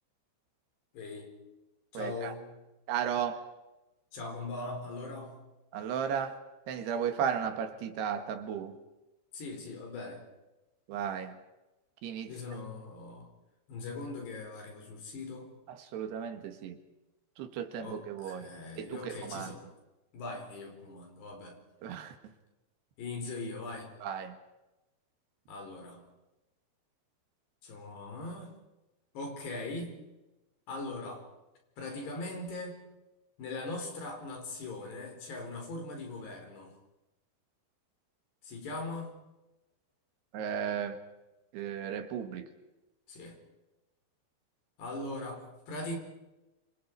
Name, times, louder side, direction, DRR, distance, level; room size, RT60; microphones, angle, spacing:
voice 1, 0.9-1.3 1.9-2.6 4.1-5.4 9.3-10.3 12.3-13.3 13.7-15.5 17.8-19.7 20.1-21.6 23.0-23.9 25.5-26.1 27.6-28.5 29.1-30.0 30.7-31.2 31.8-32.9 33.4-36.7 38.4-39.1 43.1-43.4 44.8-46.0, left 2 dB, 85° left, 3 dB, 6.6 m, -40 dB
voice 2, 2.0-2.3 2.9-3.4 5.7-6.4 6.7-8.8 10.9-11.4 12.0-12.3 15.7-16.8 17.4-18.5 18.8-19.5 21.8-22.1 24.0-24.4 40.3-41.0 41.5-42.5, right 8 dB, 80° right, 7 dB, 3.8 m, -35 dB
28.0 x 26.0 x 4.8 m, 1.0 s
omnidirectional pair, 4.7 m